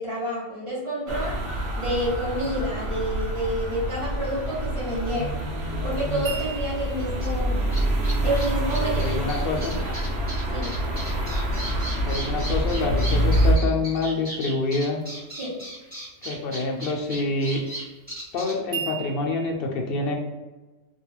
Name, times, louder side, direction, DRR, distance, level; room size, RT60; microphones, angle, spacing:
voice 1, 0.0-1.4 1.8-5.5 5.8-7.6 8.2-9.4 9.8-9.9 10.5-10.7 15.4-15.5, equal, 35° right, -5 dB, 0.6 m, -29 dB
sound 1, 1.1-13.6, right 1 dB, 85° right, 1.0 m, -26 dB
sound 2, 6.3-9.4 18.7-19.5, right 7 dB, 50° right, 1.0 m, -37 dB
sound 3, 7.2-7.3 7.7-18.5, right 1 dB, 10° right, 1.1 m, -37 dB
voice 2, 8.8-9.8 12.1-15.0 16.2-17.6 18.3-20.1, left 3 dB, 65° left, 1 dB, 0.7 m, -27 dB
2.3 x 2.3 x 3.0 m, 1.1 s
omnidirectional pair, 1.2 m